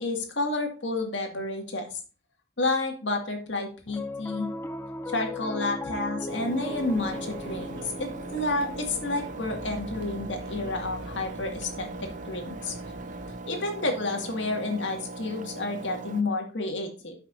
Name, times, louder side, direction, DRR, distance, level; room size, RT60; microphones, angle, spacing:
voice 1, 0.0-2.0 2.6-4.5 5.1-12.8 13.5-17.2, left 2 dB, 85° left, 3 dB, 2.1 m, -30 dB
Piano, 3.9-14.4, left 1 dB, 15° left, 0.5 m, -40 dB
Engine, 6.3-16.2, right 3 dB, 45° right, 0.5 m, -40 dB
sound 1, 6.7-13.4, right 1 dB, 70° right, 1.6 m, -44 dB
13.5 x 5.7 x 2.6 m, 0.36 s
head